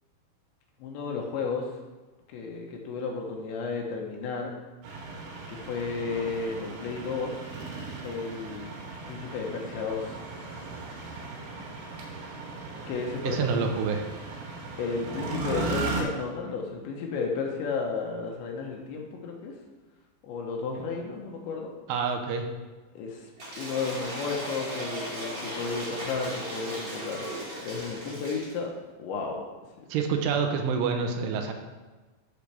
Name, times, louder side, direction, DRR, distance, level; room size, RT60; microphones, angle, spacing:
voice 1, 0.8-1.7 2.3-4.5 5.5-7.4 8.0-8.7 9.1-10.2 12.9-13.5 14.8-19.5 20.2-21.7 23.0-23.3 23.6-27.3 27.6-28.7 29.0-29.4 29.8-29.9, left 4 dB, 75° left, 1 dB, 3.2 m, -33 dB
sound 1, 4.8-16.0, right 3 dB, 75° right, 3.5 m, -37 dB
voice 2, 13.2-14.1 21.9-22.5 29.9-31.5, right 5 dB, 90° right, 4 dB, 3.3 m, -27 dB
Cheering / Applause / Crowd, 23.4-28.6, right 1 dB, 30° right, 2.4 m, -37 dB
12.0 x 6.5 x 3.4 m, 1.2 s
omnidirectional pair, 5.5 m